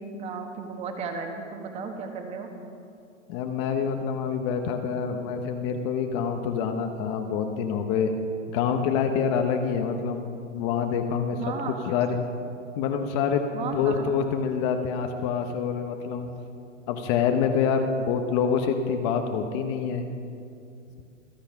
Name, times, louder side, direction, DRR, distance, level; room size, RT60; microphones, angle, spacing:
voice 1, 0.0-2.5 11.3-11.8 13.5-14.1, right 5 dB, 15° right, 4 dB, 1.4 m, -35 dB
voice 2, 3.3-8.1 8.5-11.4 11.9-12.2 12.8-16.3 16.9-20.0, left 6 dB, 25° left, 6 dB, 0.8 m, -26 dB
25.5 x 8.8 x 5.8 m, 2.5 s
hypercardioid pair, 155°, 38 cm